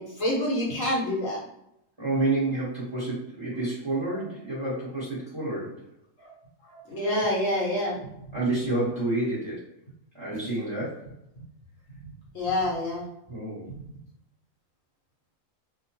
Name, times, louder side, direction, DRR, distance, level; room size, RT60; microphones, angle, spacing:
voice 1, 0.0-1.4 6.2-6.3 6.7-8.0 12.3-13.1, left 1 dB, 70° left, -4 dB, 1.4 m, -27 dB
voice 2, 2.0-5.8 7.1-7.2 8.3-9.7 10.1-11.1 13.3-13.7, right 2 dB, 20° right, -9 dB, 1.0 m, -29 dB
2.9 x 2.1 x 2.8 m, 0.81 s
omnidirectional pair, 1.5 m